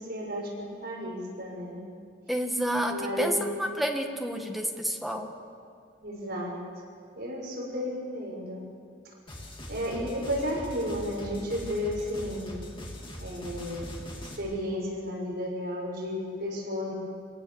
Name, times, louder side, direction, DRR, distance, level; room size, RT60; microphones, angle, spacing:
voice 1, 0.0-1.8 2.9-3.7 6.0-6.5 7.2-8.6 9.7-12.6 13.2-14.0 14.4-16.9, equal, 55° right, -2 dB, 6.2 m, -33 dB
voice 2, 2.3-5.3, equal, ahead, 2 dB, 1.6 m, -29 dB
sound 1, 9.3-14.4, left 1 dB, 25° left, 2.9 m, -42 dB
27.0 x 18.0 x 7.2 m, 2.3 s
head